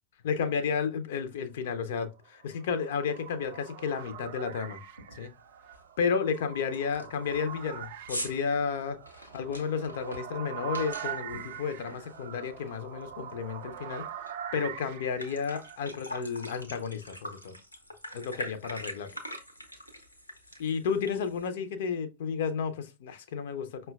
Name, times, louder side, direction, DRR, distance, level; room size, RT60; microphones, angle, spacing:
voice 1, 0.2-4.8 5.2-5.3 6.0-9.0 9.3-14.0 14.5-17.5 18.1-19.1 20.6-23.9, left 6 dB, 55° left, 0.5 m, -32 dB
sound 1, 2.3-15.8, right 9 dB, 55° right, 0.4 m, -43 dB
sound 2, 3.4-3.5 3.9-4.2 4.5-4.6 5.0-5.3 5.7-5.8 6.3-6.4 6.7-12.7 13.0-14.3 14.7-14.8 15.0-21.5, equal, 85° left, 0.8 m, -43 dB
5.4 x 2.2 x 2.2 m
figure-of-eight pair, 90°, 0 cm